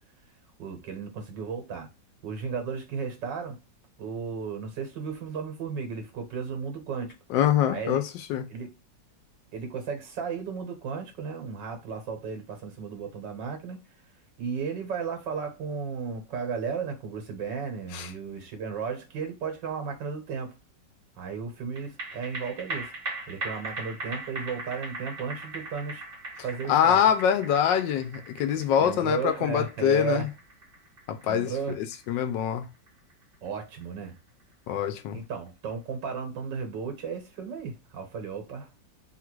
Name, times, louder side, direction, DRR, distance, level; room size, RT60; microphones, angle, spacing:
voice 1, 0.6-1.9 2.2-3.6 4.0-7.1 7.7-8.0 8.5-8.8 9.5-13.8 14.4-20.6 21.2-22.9 23.3-26.0 26.4-27.1 28.8-30.2 31.2-31.8 33.4-34.1 35.1-38.7, right 6 dB, 75° right, 1.9 m, -34 dB
voice 2, 7.3-8.4 17.9-18.1 26.7-30.3 31.1-32.7 34.7-35.2, left 9 dB, 90° left, 1.3 m, -24 dB
sound 1, 21.8-34.4 34.8-34.9, right 2 dB, 35° right, 1.0 m, -40 dB
3.8 x 2.4 x 4.5 m
omnidirectional pair, 2.0 m